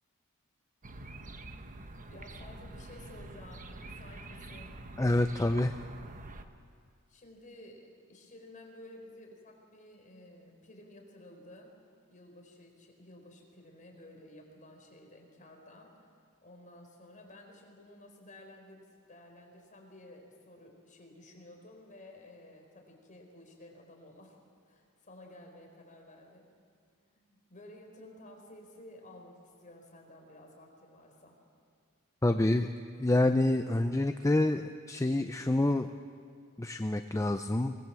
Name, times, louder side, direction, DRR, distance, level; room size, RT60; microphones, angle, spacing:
sound 1, 0.8-6.4, right 2 dB, 35° right, 1.2 m, -46 dB
voice 1, 2.1-4.8 7.1-11.7 12.1-16.1 16.4-24.4 24.6-26.5 27.1-31.4, left 1 dB, 35° left, 1 dB, 4.7 m, -53 dB
voice 2, 5.0-5.8 32.2-32.7 33.0-35.9 36.6-37.7, left 1 dB, 15° left, 7 dB, 0.6 m, -27 dB
23.0 x 20.0 x 7.7 m, 2.2 s
head